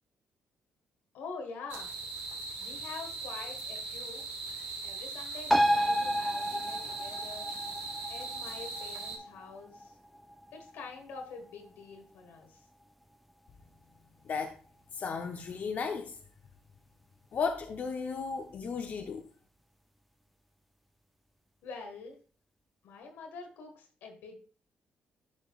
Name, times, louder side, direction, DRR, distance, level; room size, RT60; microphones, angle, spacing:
voice 1, 1.1-1.9 2.6-4.2 4.8-7.5 8.1-9.9 10.5-12.6 21.6-22.2 22.8-24.4, left 4 dB, 85° left, 1.6 m, -45 dB
sound 1, 1.7-9.2, right 3 dB, 85° right, 1.8 m, -40 dB
sound 2, 5.5-12.5 12.8-12.9, equal, ahead, 0.5 m, -32 dB
voice 2, 14.3-14.6 14.9-16.2 17.3-19.2, left 5 dB, 55° left, 0.7 m, -34 dB
11.0 x 5.1 x 2.4 m
cardioid pair, 70°, 4 cm